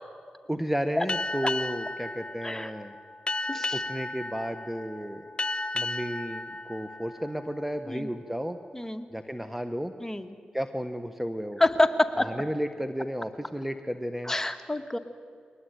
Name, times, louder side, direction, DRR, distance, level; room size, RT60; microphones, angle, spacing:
voice 1, 0.5-2.9 3.7-5.3 5.7-8.6 9.1-9.9 10.5-11.6 12.2-14.3, equal, 5° right, 8 dB, 1.4 m, -33 dB
Boat Water vehicle, 1.1-8.2, left 2 dB, 30° left, 1.0 m, -34 dB
voice 2, 3.5-3.8 7.9-8.1 8.7-9.1 10.0-10.4 11.6-12.3 14.2-15.0, left 1 dB, 15° left, 6 dB, 2.2 m, -27 dB
23.0 x 19.0 x 9.5 m, 2.2 s
supercardioid pair, 40°, 3 cm